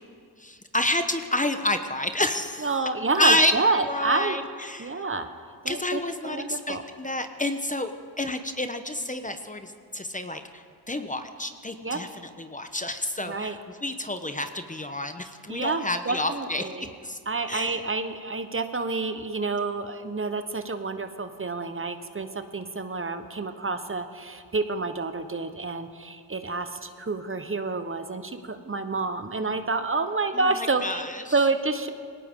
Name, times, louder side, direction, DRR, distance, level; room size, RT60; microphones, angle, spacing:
voice 1, 0.4-2.9 3.2-3.5 3.8-5.0 5.7-7.9 8.2-12.1 12.4-16.7 17.0-17.2 17.5-17.8 30.3-31.4, left 1 dB, 20° left, 8 dB, 1.0 m, -29 dB
voice 2, 2.6-4.4 4.8-5.3 5.6-6.8 11.8-12.0 13.2-13.6 15.5-16.8 17.3-31.0 31.3-31.9, right 3 dB, 30° right, 9 dB, 1.1 m, -28 dB
19.5 x 18.0 x 3.8 m, 2.2 s
supercardioid pair, 55°, 43 cm